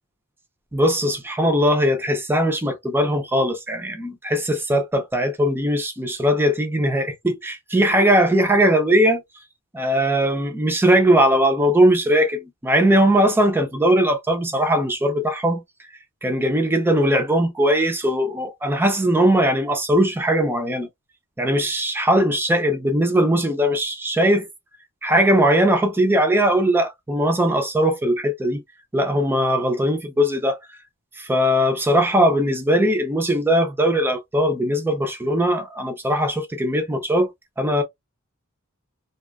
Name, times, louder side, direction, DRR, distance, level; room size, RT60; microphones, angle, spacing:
voice 1, 0.7-9.2 9.7-15.6 16.2-20.9 21.4-24.5 25.0-28.6 28.9-30.6 31.2-37.3 37.6-37.8, equal, 10° right, 0.4 m, -19 dB
2.5 x 2.2 x 2.3 m
head